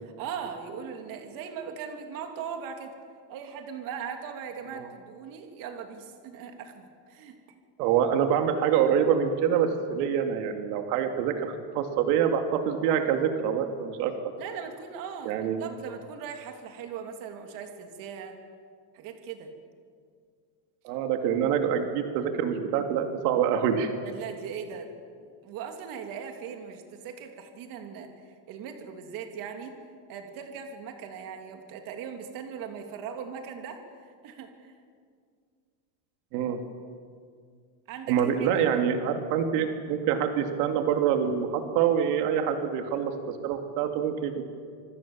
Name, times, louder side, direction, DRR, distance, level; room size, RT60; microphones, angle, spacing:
voice 1, 0.0-2.9 3.3-7.4 14.4-18.4 18.9-19.5 24.0-24.9 25.2-28.1 28.5-29.8 30.1-34.7 37.9-38.8, right 7 dB, 45° right, 4 dB, 3.0 m, -39 dB
voice 2, 7.8-14.2 15.2-15.6 20.8-23.9 36.3-36.6 38.1-44.4, right 8 dB, 85° right, 5 dB, 2.5 m, -26 dB
26.5 x 23.0 x 7.4 m, 2.1 s
cardioid pair, 175°, 45 cm